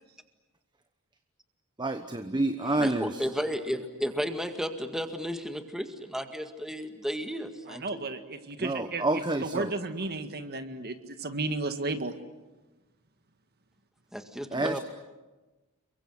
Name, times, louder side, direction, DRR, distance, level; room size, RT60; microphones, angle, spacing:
voice 1, 1.8-3.3 8.6-9.7 14.5-14.8, right 2 dB, 20° right, 8 dB, 1.0 m, -28 dB
voice 2, 2.8-7.8 14.1-14.8, equal, ahead, 6 dB, 1.9 m, -33 dB
voice 3, 7.7-12.2, right 3 dB, 45° right, 8 dB, 1.8 m, -34 dB
28.5 x 23.5 x 8.0 m, 1.1 s
head